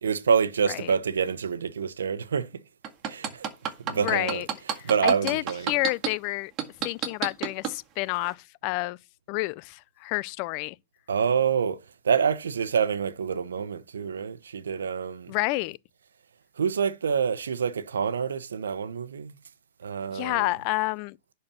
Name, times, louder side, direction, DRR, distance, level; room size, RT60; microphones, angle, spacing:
voice 1, 0.0-2.5 3.1-3.5 3.8-4.4 4.8-5.7 11.1-11.8 12.0-15.3 16.6-19.3 19.8-20.5, right 6 dB, 90° right, 0.9 m, -27 dB
sound 1, 2.8-6.1 6.6-7.7 8.2-8.3, right 9 dB, 30° right, 1.8 m, -28 dB
voice 2, 3.9-4.5 4.7-6.5 6.8-9.0 9.3-10.8 15.3-15.8 20.1-21.2, left 22 dB, 45° left, 0.4 m, -29 dB
10.5 x 4.4 x 6.9 m
hypercardioid pair, 130°, 0 cm